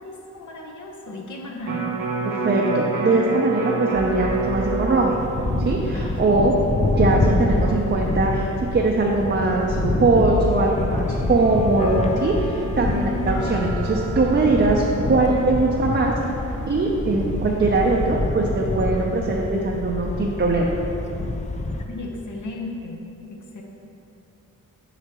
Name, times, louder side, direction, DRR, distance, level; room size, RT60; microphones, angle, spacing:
voice 1, 0.0-1.9 5.9-6.4 12.8-13.5 21.9-23.6, left 1 dB, 60° left, 0 dB, 0.9 m, -34 dB
Electric guitar, 1.6-7.9 8.3-8.4, right 3 dB, 80° right, 0.8 m, -28 dB
voice 2, 2.3-5.2 5.6-6.5 7.0-14.8 15.1-16.1 16.7-20.8, right 3 dB, 35° right, -1 dB, 0.6 m, -21 dB
sound 1, 3.9-21.8, left 2 dB, 20° left, 0.5 m, -26 dB
sound 2, 11.4-17.9, left 1 dB, 45° left, 1.4 m, -37 dB
6.8 x 5.1 x 2.9 m, 3.0 s
cardioid pair, 55°, 33 cm